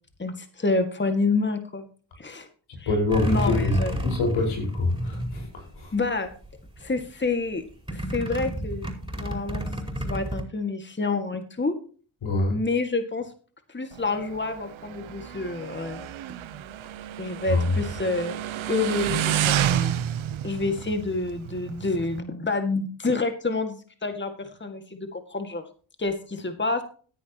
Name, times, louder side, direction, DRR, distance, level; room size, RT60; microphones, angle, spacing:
voice 1, 0.2-1.8 2.2-2.5 2.8-2.9 3.3-3.9 5.9-6.3 6.8-7.6 7.9-8.9 9.2-9.6 10.0-11.7 12.5-13.3 13.7-16.1 17.2-18.3 18.7-19.9 20.4-25.6 26.0-26.8, left 3 dB, 25° left, 2.0 m, -28 dB
voice 2, 2.9-5.9 12.2-12.6 17.5-17.6, left 3 dB, 85° left, 5.2 m, -25 dB
sound 1, 3.1-6.1 6.4-7.0 7.9-10.4, equal, 10° right, 4.8 m, -30 dB
Motorcycle, 13.9-22.2, right 11 dB, 80° right, 0.9 m, -30 dB
15.0 x 10.0 x 3.0 m
cardioid pair, 55°, 47 cm